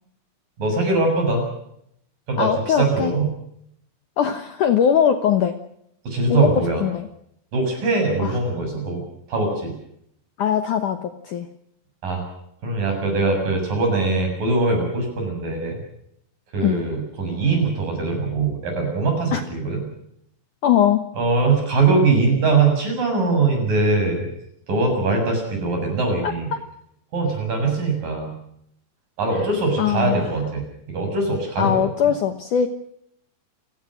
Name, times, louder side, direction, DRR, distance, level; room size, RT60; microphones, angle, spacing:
voice 1, 0.6-1.4 2.3-3.3 6.1-6.8 7.5-9.0 9.3-9.7 12.0-12.2 12.6-15.8 16.5-19.8 21.2-24.3 24.7-26.5 27.1-28.3 29.2-31.9, right 3 dB, 45° right, 3 dB, 8.8 m, -22 dB
voice 2, 2.4-3.1 4.2-5.6 6.3-6.5 6.8-7.1 8.2-8.4 10.4-11.5 16.6-16.8 19.3-19.4 20.6-21.1 26.2-26.6 29.3-29.5 29.8-30.3 31.6-32.7, left 9 dB, 90° left, 8 dB, 1.7 m, -21 dB
29.0 x 17.0 x 6.4 m, 0.73 s
omnidirectional pair, 5.5 m